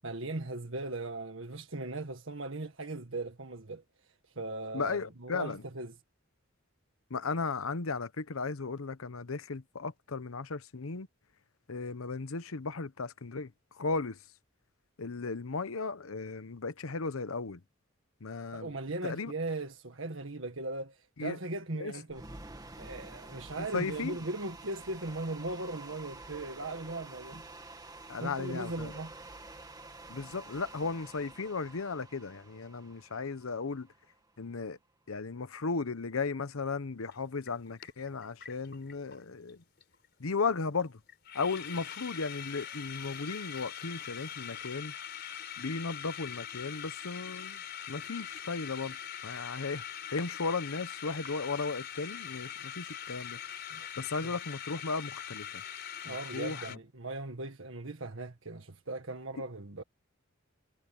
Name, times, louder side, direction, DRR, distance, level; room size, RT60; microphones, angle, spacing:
voice 1, 0.0-3.8 4.4-5.9 18.5-22.2 22.8-27.4 28.2-29.1 53.7-53.9 54.2-54.3 56.0-59.8, right 2 dB, 65° right, 1.8 m, -38 dB
voice 2, 4.7-5.6 7.1-11.1 11.7-14.2 15.0-17.6 18.2-18.7 19.0-19.3 21.2-21.4 21.8-21.9 23.6-24.2 28.1-28.9 30.1-33.9 34.4-34.8 35.1-39.6 40.2-41.0 41.3-44.9 45.6-47.6 47.9-49.0 49.2-49.8 50.1-53.4 54.0-55.6 56.1-56.8, left 4 dB, 80° left, 0.9 m, -35 dB
sound 1, 22.1-34.2, right 2 dB, 20° right, 2.1 m, -49 dB
sound 2, 37.1-37.2 37.5-39.2 39.5-39.6 39.8-40.1 40.3-40.4 40.8-40.9 41.1-56.8, left 9 dB, 55° left, 4.0 m, -42 dB
head